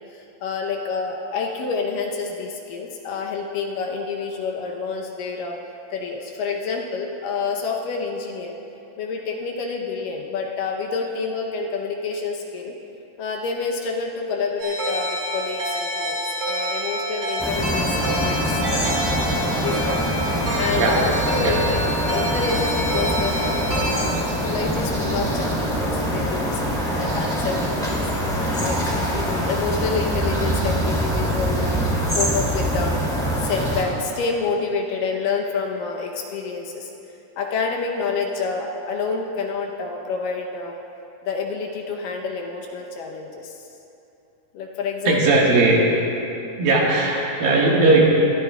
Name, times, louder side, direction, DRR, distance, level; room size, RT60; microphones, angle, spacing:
voice 1, 0.1-5.6 5.9-8.5 9.0-12.8 13.2-16.2 16.5-18.9 19.6-20.0 20.3-28.8 29.1-36.9 37.4-40.8 41.3-43.7 44.5-45.3, left 4 dB, 75° left, 0 dB, 2.3 m, -28 dB
sound 1, 14.6-24.0, equal, 40° right, 3.0 m, -27 dB
sound 2, 17.4-33.8, equal, ahead, 1.4 m, -24 dB
voice 2, 45.1-45.9 46.6-48.0, right 2 dB, 70° right, -3 dB, 3.3 m, -18 dB
21.0 x 13.5 x 2.3 m, 2.8 s
omnidirectional pair, 4.3 m